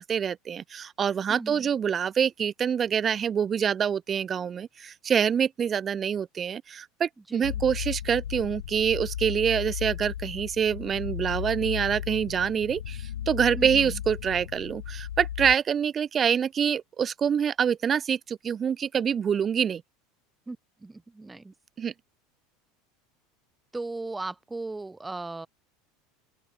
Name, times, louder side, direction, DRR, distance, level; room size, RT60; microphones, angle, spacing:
voice 1, 0.0-19.8 21.8-21.9, right 7 dB, 30° right, 0.8 m, -26 dB
voice 2, 1.3-1.7 7.3-7.6 13.6-14.0 20.5-21.5 23.7-25.5, right 3 dB, 10° right, 2.2 m, -37 dB
sound 1, 7.4-15.6, left 11 dB, 80° left, 0.8 m, -35 dB
open air
hypercardioid pair, 80°, 0 cm